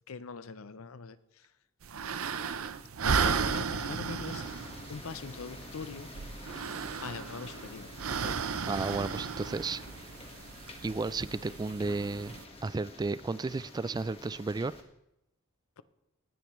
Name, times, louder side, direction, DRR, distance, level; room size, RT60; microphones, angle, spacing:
voice 1, 0.1-1.5 3.0-4.4 4.9-6.1 7.0-7.9 8.2-8.5 15.8-15.9, left 5 dB, 80° left, 15 dB, 0.6 m, -42 dB
sound 1, 1.8-12.4, right 6 dB, 85° right, 0.7 m, -35 dB
sound 2, 4.2-14.8, left 2 dB, 30° left, 1.6 m, -49 dB
voice 2, 8.7-9.8 10.8-14.7, right 3 dB, 20° right, 18 dB, 0.3 m, -33 dB
18.0 x 10.5 x 3.2 m, 0.85 s
head